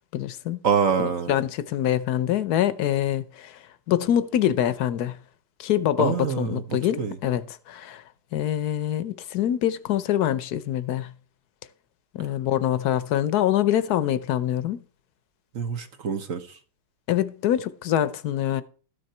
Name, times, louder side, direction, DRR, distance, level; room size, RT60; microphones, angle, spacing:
voice 1, 0.1-0.6 1.3-3.6 3.9-5.2 5.6-8.0 8.3-11.1 12.1-14.8 17.1-18.6, left 11 dB, 65° left, 1.2 m, -25 dB
voice 2, 0.6-1.4 6.0-7.2 15.5-16.6, right 6 dB, 50° right, 1.3 m, -26 dB
13.0 x 6.7 x 4.3 m
omnidirectional pair, 2.0 m